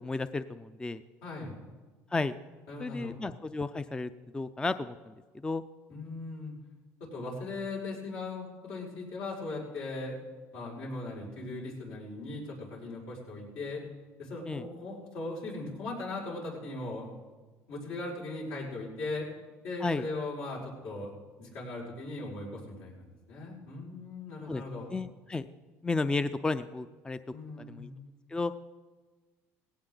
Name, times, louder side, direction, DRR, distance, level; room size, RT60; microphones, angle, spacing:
voice 1, 0.0-1.0 2.1-2.4 2.8-5.1 5.4-5.6 14.5-14.6 19.8-20.0 24.5-24.6 24.9-25.4 25.8-27.2 27.6-27.9 28.3-28.5, left 3 dB, 15° left, 12 dB, 0.4 m, -33 dB
voice 2, 1.2-1.6 2.7-3.2 5.9-6.6 7.1-10.2 10.5-13.8 14.2-17.1 17.7-19.3 19.6-21.1 21.4-24.9 27.3-27.9, left 2 dB, 80° left, -5 dB, 5.5 m, -39 dB
18.0 x 17.0 x 3.9 m, 1.3 s
supercardioid pair, 100°, 6 cm